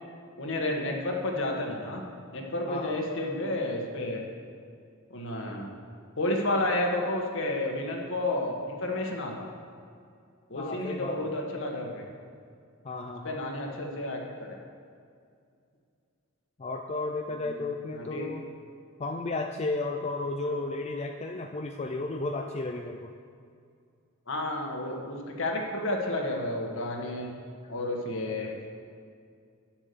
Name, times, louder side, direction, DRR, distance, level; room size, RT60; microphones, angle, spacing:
voice 1, 0.4-2.0 2.3-4.2 5.1-5.7 6.2-9.5 10.5-12.0 13.3-14.6 18.0-18.3 20.4-20.5 24.3-27.3 27.7-28.5, left 1 dB, 65° left, 0 dB, 1.6 m, -31 dB
voice 2, 2.7-3.0 10.5-11.2 12.8-13.3 16.6-18.4 19.0-23.1, left 3 dB, 30° left, 3 dB, 0.5 m, -33 dB
9.9 x 7.3 x 6.9 m, 2.3 s
head